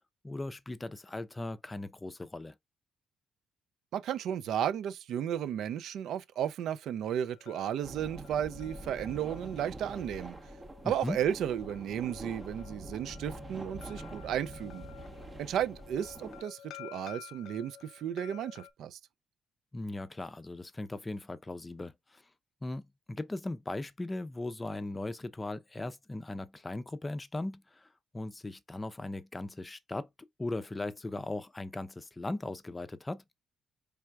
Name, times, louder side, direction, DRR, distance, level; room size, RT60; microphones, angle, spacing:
voice 1, 0.2-2.5 10.8-11.2 19.7-22.2 22.6-27.9 28.1-30.1 30.4-33.2, left 2 dB, 20° left, 0.5 m, -38 dB
voice 2, 3.9-10.4 10.8-14.9 15.4-19.0, right 9 dB, 80° right, 0.4 m, -34 dB
sound 1, 7.3-18.7, left 10 dB, 75° left, 0.3 m, -52 dB
sound 2, 7.8-16.4, right 2 dB, 25° right, 0.7 m, -46 dB
4.5 x 3.4 x 2.3 m
cardioid pair, 90°, 0 cm